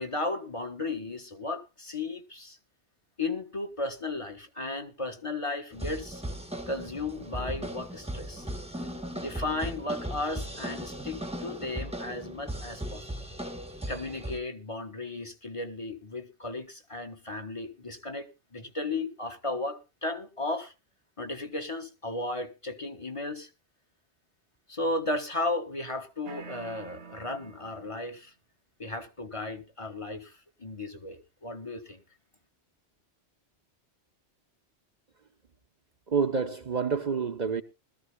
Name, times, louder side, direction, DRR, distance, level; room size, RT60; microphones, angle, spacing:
voice 1, 0.0-2.6 3.2-6.2 6.7-8.5 9.1-13.0 13.9-20.7 21.2-23.5 24.7-28.3 28.8-30.3 30.6-32.0, left 2 dB, 30° left, 1.5 m, -35 dB
sound 1, 5.7-14.4, equal, 5° right, 1.1 m, -37 dB
sound 2, 26.3-28.2, right 6 dB, 90° right, 1.3 m, -47 dB
voice 2, 36.1-37.6, right 5 dB, 45° right, 0.9 m, -28 dB
20.5 x 13.5 x 2.2 m
omnidirectional pair, 1.1 m